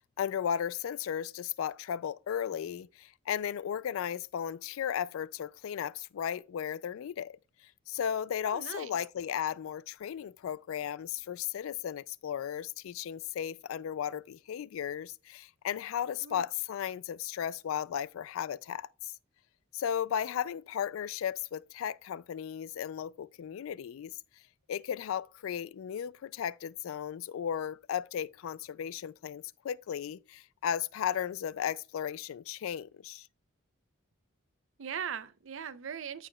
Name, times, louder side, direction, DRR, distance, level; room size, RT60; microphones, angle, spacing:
voice 1, 0.0-19.1 19.7-24.2 24.7-33.3, left 9 dB, 85° left, 0.3 m, -35 dB
voice 2, 8.5-8.9 16.2-16.4 34.8-36.3, right 7 dB, 70° right, 0.5 m, -39 dB
14.0 x 4.8 x 2.2 m
head